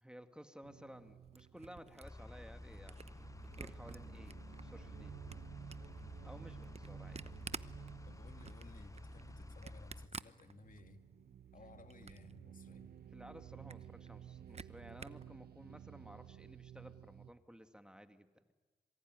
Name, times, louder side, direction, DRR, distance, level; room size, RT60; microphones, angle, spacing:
voice 1, 0.0-3.0 3.4-5.2 6.2-7.4 13.1-18.5, equal, 5° right, 7 dB, 2.3 m, -55 dB
sound 1, 0.6-17.3, right 9 dB, 70° right, 1.1 m, -55 dB
Camera, 1.0-4.6 5.0-11.1 11.5-12.4 12.7-12.8 13.1-13.2 13.5-15.3, right 4 dB, 40° right, 1.0 m, -51 dB
sound 2, 2.0-10.1, left 2 dB, 20° left, 0.9 m, -52 dB
voice 2, 8.1-11.0 11.5-13.0, left 3 dB, 55° left, 6 dB, 2.6 m, -58 dB
26.0 x 23.5 x 9.6 m, 1.3 s
supercardioid pair, 40°, 17 cm